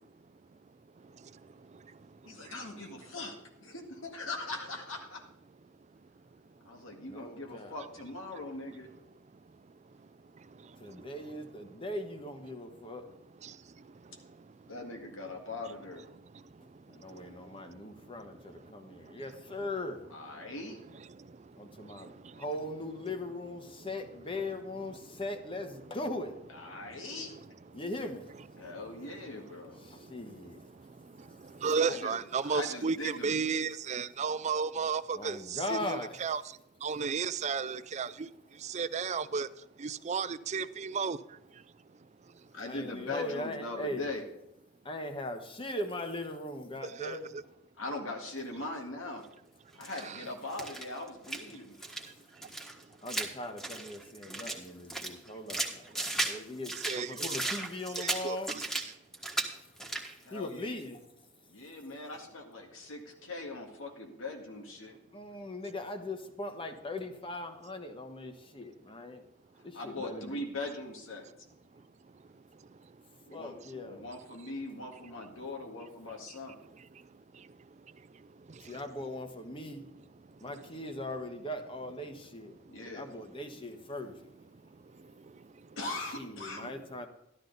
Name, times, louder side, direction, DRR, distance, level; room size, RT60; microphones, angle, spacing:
voice 1, 2.3-5.3 6.6-8.9 14.7-16.1 20.1-20.8 26.5-27.6 28.6-29.8 31.9-32.1 32.4-33.3 42.5-44.2 47.8-49.2 49.8-51.8 60.2-60.8 61.5-65.0 69.7-71.3 73.3-76.6 82.7-83.1 85.8-86.7, left 2 dB, 85° left, 1.8 m, -41 dB
voice 2, 6.9-7.8 10.8-13.1 16.9-20.1 21.6-26.4 27.7-28.3 29.8-30.6 35.1-36.2 42.6-44.1 44.8-47.3 53.0-58.5 60.3-61.0 65.1-69.2 69.6-70.5 73.3-74.0 78.6-79.9 80.4-82.5 82.9-84.1 86.2-87.1, left 1 dB, 25° left, 1.2 m, -39 dB
voice 3, 31.6-36.4 36.8-38.3 38.7-39.5 39.8-41.2 47.0-47.2 50.0-50.2 56.8-57.3 58.0-58.4, right 5 dB, 35° right, 0.4 m, -33 dB
sound 1, 49.8-50.1 50.5-51.5 51.8-52.1 52.4-54.6 54.9-56.4 56.6-58.9 59.1-59.5 59.8-60.1, right 2 dB, 5° left, 1.4 m, -35 dB
13.0 x 12.0 x 4.0 m
head